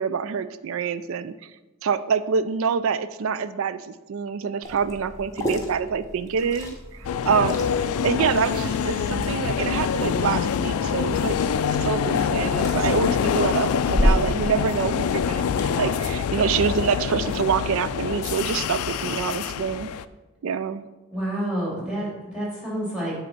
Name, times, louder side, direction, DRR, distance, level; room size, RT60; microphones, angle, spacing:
voice 1, 0.0-1.3 1.8-7.7 8.0-11.4 11.8-19.9 20.4-20.9, right 6 dB, 65° right, 14 dB, 0.4 m, -26 dB
Liquid, 4.6-15.7, equal, 15° left, 1.0 m, -31 dB
sound 1, 7.0-20.0, left 7 dB, 85° left, 0.3 m, -25 dB
voice 2, 21.1-23.1, right 1 dB, 5° right, -5 dB, 2.7 m, -29 dB
7.7 x 3.9 x 5.8 m, 1.1 s
head